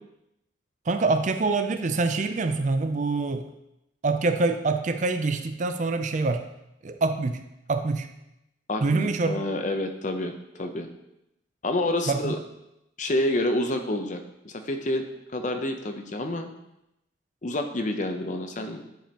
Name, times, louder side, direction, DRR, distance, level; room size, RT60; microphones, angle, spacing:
voice 1, 0.9-3.5 4.0-6.4 6.8-7.4 7.7-8.1 8.8-9.4 12.1-12.3, right 3 dB, 40° right, 8 dB, 0.4 m, -25 dB
voice 2, 8.7-10.9 11.6-12.4 13.0-16.5 17.4-18.8, left 1 dB, 40° left, 6 dB, 0.6 m, -28 dB
10.0 x 5.2 x 2.9 m, 0.85 s
head